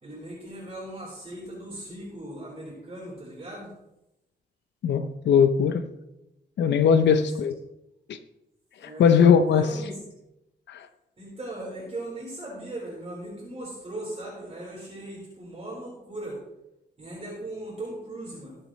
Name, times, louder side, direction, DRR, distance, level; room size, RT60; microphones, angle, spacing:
voice 1, 0.0-3.7 7.0-7.4 8.8-9.2 9.5-10.0 11.2-16.4 17.0-18.6, right 1 dB, 35° right, -5 dB, 4.3 m, -38 dB
voice 2, 4.8-5.9 6.6-7.6 8.1-8.2 8.8-9.7 10.7-10.9, left 7 dB, 85° left, 9 dB, 0.7 m, -20 dB
19.5 x 8.5 x 3.2 m, 0.92 s
cardioid pair, 95°, 18 cm